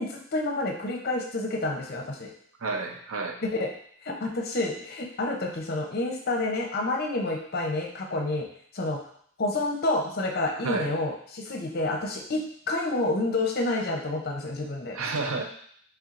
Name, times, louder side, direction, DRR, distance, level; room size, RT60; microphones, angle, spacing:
voice 1, 0.0-2.3 3.4-3.7 4.0-8.5 8.7-9.0 9.4-12.4 12.7-15.0, left 2 dB, 50° left, 1 dB, 0.6 m, -29 dB
voice 2, 2.6-3.4 10.6-10.9 14.9-15.4, right 3 dB, 85° right, 3 dB, 0.6 m, -30 dB
4.3 x 3.4 x 2.5 m, 0.63 s
head